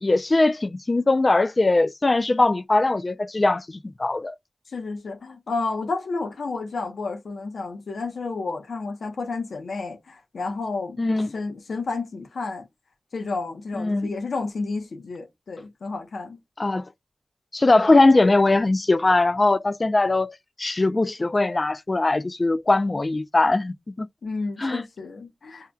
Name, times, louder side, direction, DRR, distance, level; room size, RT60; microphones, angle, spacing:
voice 1, 0.0-4.3 11.0-11.3 13.7-14.1 16.6-16.9 17.5-24.1 24.6-24.8, left 2 dB, 45° left, 0.3 m, -21 dB
voice 2, 4.7-11.0 11.3-12.7 13.1-16.4 24.2-25.7, left 3 dB, 90° left, 0.8 m, -31 dB
5.5 x 2.2 x 2.2 m
cardioid pair, 45°, 0 cm